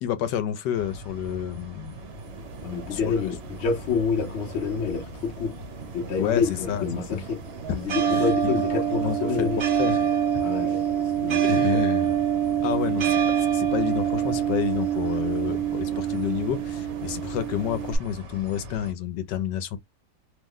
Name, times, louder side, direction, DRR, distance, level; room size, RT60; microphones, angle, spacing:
voice 1, 0.0-2.0 2.9-3.1 6.2-6.9 7.1-7.2 8.1-9.5 9.8-10.0 10.3-10.4 11.4-12.2 12.6-13.2 13.5-19.8, left 9 dB, 85° left, 1.3 m, -29 dB
sound 1, 0.7-18.9, equal, 45° right, 1.3 m, -42 dB
sound 2, 2.0-18.0, right 9 dB, 75° right, 0.5 m, -27 dB
voice 2, 2.6-5.5 5.9-7.4 7.7-9.6 10.4-10.8 11.2-11.8, left 5 dB, 50° left, 0.9 m, -28 dB
3.1 x 2.1 x 3.6 m
omnidirectional pair, 1.9 m